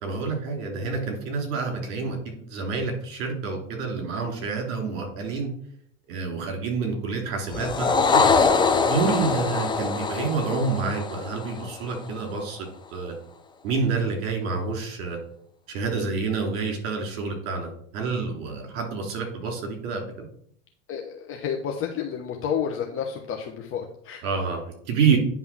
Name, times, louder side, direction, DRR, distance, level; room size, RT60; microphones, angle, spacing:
voice 1, 0.0-5.5 6.1-8.3 8.8-13.1 13.6-15.2 15.7-20.3 24.2-25.2, right 4 dB, 55° right, 2 dB, 3.5 m, -28 dB
sound 1, 7.5-12.1, left 5 dB, 10° left, 0.7 m, -23 dB
voice 2, 20.9-24.2, left 7 dB, 30° left, 1 dB, 1.0 m, -30 dB
9.7 x 3.6 x 6.0 m, 0.64 s
hypercardioid pair, 110°, 40 cm